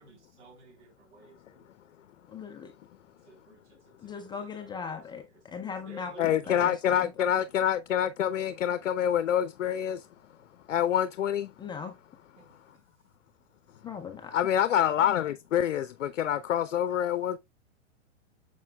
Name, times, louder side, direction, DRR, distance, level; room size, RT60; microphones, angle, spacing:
voice 1, 0.0-1.7 3.3-4.9 5.5-6.7 12.4-12.6, right 3 dB, 70° right, 3.5 m, -52 dB
voice 2, 2.3-2.7 4.0-7.1 11.6-12.0 13.8-14.5, left 6 dB, 10° left, 0.5 m, -39 dB
voice 3, 6.2-10.1 10.7-11.5 14.3-17.4, left 10 dB, 80° left, 0.6 m, -26 dB
7.4 x 6.1 x 2.2 m
hypercardioid pair, 125°, 36 cm